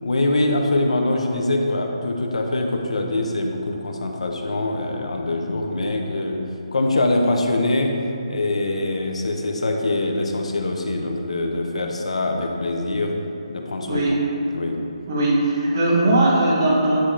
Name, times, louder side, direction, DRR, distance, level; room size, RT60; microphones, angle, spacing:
voice 1, 0.0-6.4 6.7-7.9 8.3-13.1 13.5-14.0 14.5-14.8, left 2 dB, 80° left, 2 dB, 1.0 m, -23 dB
voice 2, 13.9-14.2 15.1-17.0, right 1 dB, 25° right, -5 dB, 1.3 m, -19 dB
9.5 x 4.4 x 4.9 m, 2.7 s
hypercardioid pair, 180°, 3 cm